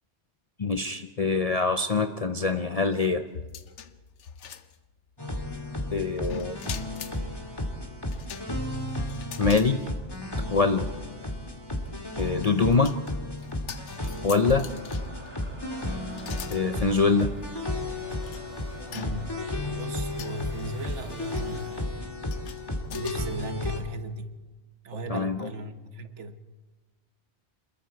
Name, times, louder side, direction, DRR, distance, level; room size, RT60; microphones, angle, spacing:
voice 1, 0.6-3.3 5.9-6.6 9.4-9.8 10.5-10.9 12.2-13.0 14.2-14.7 16.5-17.3 25.1-25.5, left 4 dB, 40° left, 7 dB, 0.7 m, -24 dB
sound 1, 3.3-5.1 6.2-7.2 8.1-9.7 10.1-10.2 11.8-15.3 16.1-16.6 17.4-17.5 18.1-18.4 18.9-19.5 20.2-20.6 21.4-21.6 22.3-23.2, left 8 dB, 85° left, 1.2 m, -43 dB
sound 2, 5.2-23.8, left 1 dB, 20° left, 2.2 m, -33 dB
sound 3, 14.1-21.8, right 2 dB, 40° right, 3.1 m, -48 dB
voice 2, 18.9-19.4 19.7-21.9 22.9-24.4 24.8-26.4, right 2 dB, 85° right, 9 dB, 1.5 m, -37 dB
28.0 x 21.0 x 4.6 m, 1.2 s
omnidirectional pair, 1.2 m